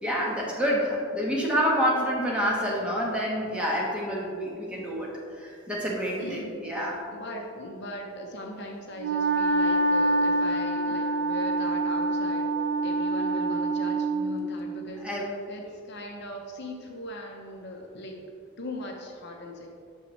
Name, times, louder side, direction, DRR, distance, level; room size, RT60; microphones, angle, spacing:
voice 1, 0.0-5.1 5.4-7.0 15.0-15.3, equal, 5° right, -4 dB, 1.2 m, -28 dB
voice 2, 6.2-6.7 7.1-12.5 12.8-18.2 18.6-19.7, left 1 dB, 55° left, 1 dB, 0.8 m, -39 dB
Wind instrument woodwind instrument, 9.0-14.4, right 2 dB, 50° right, 0.6 m, -26 dB
8.7 x 6.3 x 3.2 m, 2.3 s
head